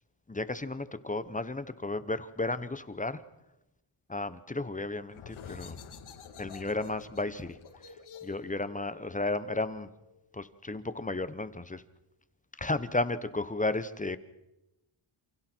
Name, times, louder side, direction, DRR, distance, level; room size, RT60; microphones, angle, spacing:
voice 1, 0.3-3.2 4.1-5.8 6.4-7.6 8.2-9.9 10.3-11.8 12.6-14.2, left 2 dB, 15° left, 13 dB, 1.0 m, -33 dB
sound 1, 5.1-10.5, left 6 dB, 70° left, 3.2 m, -49 dB
29.0 x 28.5 x 4.5 m, 0.93 s
wide cardioid pair, 130°, 50 cm